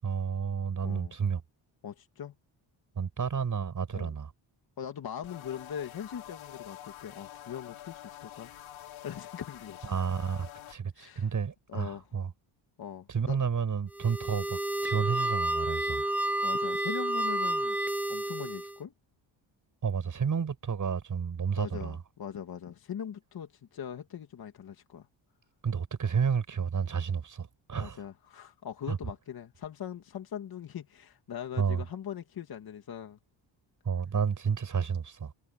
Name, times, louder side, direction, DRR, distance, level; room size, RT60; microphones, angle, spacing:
voice 1, 0.0-1.4 3.0-4.3 9.8-12.3 13.1-16.0 19.8-22.0 25.6-28.0 28.9-29.0 31.6-31.8 33.8-35.3, right 6 dB, 40° right, 7.3 m, -31 dB
voice 2, 0.8-1.1 1.8-2.3 3.9-4.1 4.8-8.5 8.8-9.9 11.0-11.3 11.7-12.1 12.8-13.4 16.4-17.8 18.1-18.9 21.6-25.1 27.8-33.2, left 8 dB, 50° left, 2.2 m, -41 dB
sound 1, 5.2-10.8, left 12 dB, 85° left, 3.5 m, -47 dB
sound 2, 13.9-18.8, right 1 dB, 5° right, 0.7 m, -30 dB
cardioid pair, 135°, 46 cm